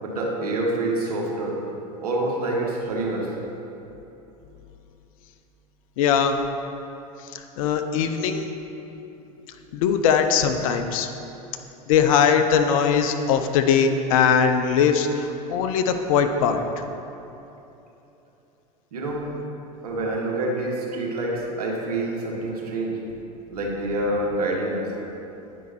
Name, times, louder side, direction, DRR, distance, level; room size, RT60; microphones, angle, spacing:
voice 1, 0.0-1.6 2.0-3.3 18.9-19.2 19.8-23.0 23.5-24.9, right 2 dB, 70° right, -2 dB, 1.6 m, -27 dB
voice 2, 6.0-6.4 7.3-8.6 9.7-11.1 11.9-16.6, left 7 dB, 60° left, 7 dB, 0.7 m, -21 dB
10.0 x 5.3 x 4.2 m, 3.0 s
figure-of-eight pair, 85°, 20 cm